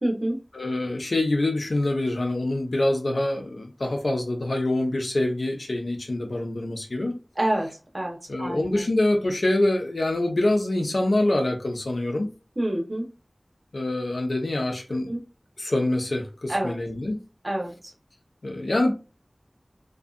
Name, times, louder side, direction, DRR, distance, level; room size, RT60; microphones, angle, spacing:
voice 1, 0.0-0.4 7.4-8.8 12.6-13.1 14.9-15.2 16.5-16.8 17.4-17.9, right 1 dB, 40° right, 1.0 m, -28 dB
voice 2, 0.5-7.2 8.3-12.3 13.7-15.1 15.6-17.2 18.4-18.9, left 1 dB, 90° left, 0.6 m, -25 dB
2.7 x 2.3 x 2.4 m
wide cardioid pair, 55°, 0 cm